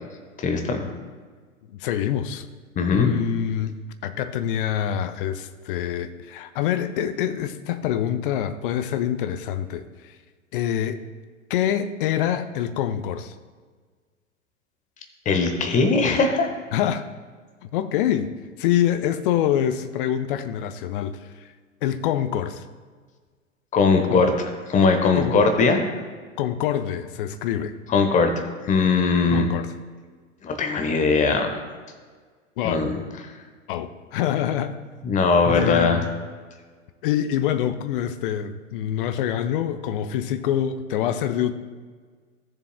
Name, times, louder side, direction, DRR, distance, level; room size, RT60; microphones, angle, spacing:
voice 1, 0.4-0.9 2.8-3.1 15.2-16.5 23.7-25.8 27.9-28.3 28.7-29.5 30.4-31.5 32.6-32.9 33.2-33.3 35.0-36.0, left 4 dB, 20° left, 6 dB, 1.0 m, -20 dB
voice 2, 1.7-2.5 2.9-3.8 4.0-10.1 10.5-11.0 11.5-13.3 16.7-17.0 17.7-18.3 18.6-21.3 21.8-22.6 24.0-24.3 25.2-25.4 26.4-27.7 29.3-29.7 32.6-32.8 33.7-34.7 35.5-36.1 37.0-41.5, left 10 dB, 40° left, 11 dB, 0.6 m, -25 dB
15.5 x 6.9 x 2.2 m, 1.5 s
figure-of-eight pair, 95°, 40 cm